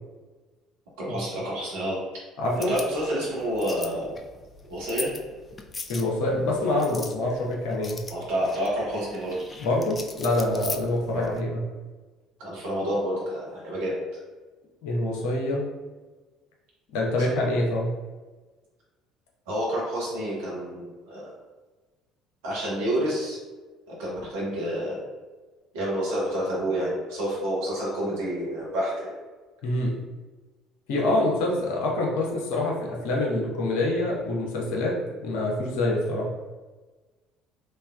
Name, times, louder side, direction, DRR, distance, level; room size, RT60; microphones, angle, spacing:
voice 1, 1.0-2.0 2.7-4.1 4.7-5.1 8.1-9.4 11.1-11.3 12.4-14.0 17.2-17.5 19.5-21.3 22.4-23.4 23.9-25.0 25.7-29.1 31.0-31.3, equal, 65° right, -5 dB, 1.1 m, -29 dB
voice 2, 2.4-2.7 5.9-8.0 9.6-11.6 14.8-15.7 16.9-17.9 29.6-30.0 30.9-36.3, left 1 dB, 65° left, -2 dB, 0.8 m, -26 dB
sound 1, 2.4-11.4, left 4 dB, 25° left, 0.3 m, -40 dB
3.4 x 3.3 x 2.2 m, 1.3 s
figure-of-eight pair, 55°, 0 cm